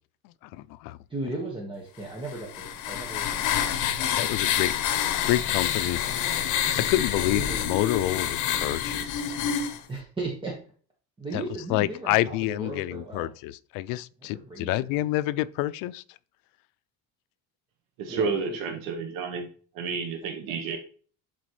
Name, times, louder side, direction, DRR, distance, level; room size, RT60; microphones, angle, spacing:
voice 1, 0.5-1.0 4.2-4.7 5.2-6.1 6.8-9.2 11.3-11.4 11.7-16.0, left 16 dB, 85° left, 0.5 m, -28 dB
voice 2, 1.1-4.8 6.6-7.7 9.9-10.5 11.2-13.3 14.2-14.9 18.1-18.6 20.5-20.6, right 2 dB, 15° right, 1.4 m, -37 dB
sound 1, 2.3-9.8, left 9 dB, 65° left, 1.0 m, -27 dB
voice 3, 18.0-19.5 19.7-20.8, right 5 dB, 85° right, 1.1 m, -30 dB
11.0 x 4.2 x 3.2 m
cardioid pair, 145°, 33 cm